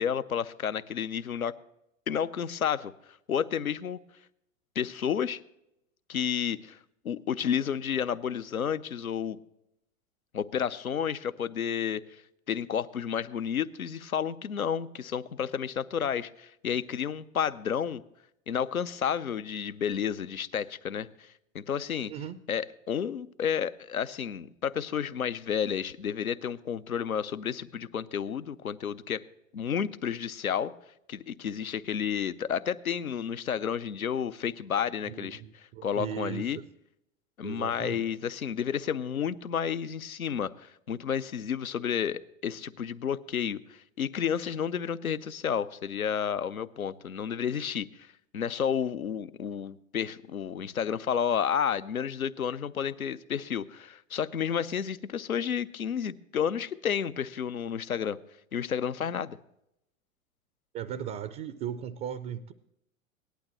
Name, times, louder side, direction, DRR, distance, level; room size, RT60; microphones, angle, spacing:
voice 1, 0.0-1.5 2.1-2.9 3.3-4.0 4.8-5.4 6.1-6.8 7.0-9.4 10.3-12.2 12.5-18.0 18.5-22.1 22.5-29.2 29.5-30.7 31.1-36.6 37.4-58.2 58.5-59.4, left 8 dB, 90° left, 13 dB, 0.6 m, -31 dB
voice 2, 35.1-36.5 37.4-38.0 60.7-62.5, right 9 dB, 25° right, 13 dB, 0.4 m, -37 dB
18.0 x 11.5 x 3.0 m, 0.81 s
figure-of-eight pair, 95°, 41 cm